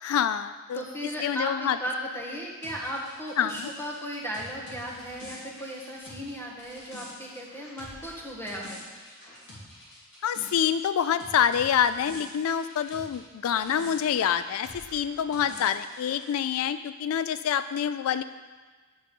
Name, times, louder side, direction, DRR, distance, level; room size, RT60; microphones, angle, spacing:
voice 1, 0.0-0.8 1.2-1.8 3.4-3.7 10.2-18.2, left 8 dB, 80° left, 12 dB, 0.3 m, -26 dB
voice 2, 0.7-8.8, equal, 10° left, -3 dB, 1.5 m, -36 dB
sound 1, 2.6-13.2 13.4-16.3, left 1 dB, 60° left, 3.3 m, -46 dB
9.9 x 6.2 x 5.4 m, 1.4 s
head